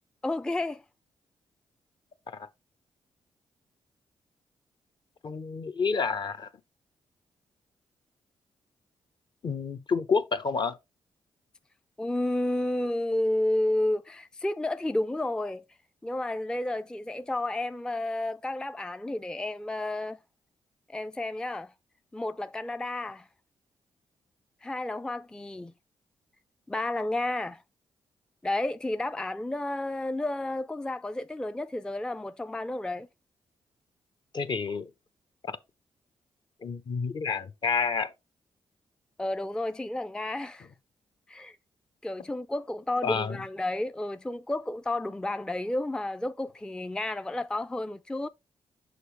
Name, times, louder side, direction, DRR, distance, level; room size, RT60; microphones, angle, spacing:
voice 1, 0.2-0.8 12.0-15.6 16.0-20.2 20.9-21.7 22.1-23.3 24.6-25.7 26.7-27.6 28.4-33.1 39.2-40.7 41.3-41.6 42.0-48.3, left 1 dB, 10° left, 0.4 m, -31 dB
voice 2, 5.2-6.5 9.4-10.8 34.3-34.9 35.4-35.6 36.6-38.1 43.0-43.4, left 5 dB, 50° left, 0.8 m, -29 dB
6.6 x 5.0 x 3.2 m
supercardioid pair, 55°, 10 cm